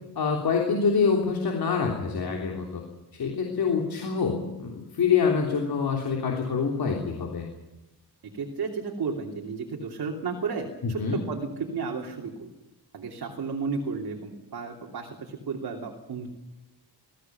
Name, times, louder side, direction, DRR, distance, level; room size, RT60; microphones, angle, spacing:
voice 1, 0.1-2.8 3.1-7.5 10.8-11.2, left 5 dB, 65° left, 1 dB, 3.4 m, -26 dB
voice 2, 8.2-12.5 12.9-16.3, right 5 dB, 65° right, 1 dB, 3.1 m, -33 dB
21.5 x 16.0 x 9.3 m, 0.98 s
wide cardioid pair, 160°, 40 cm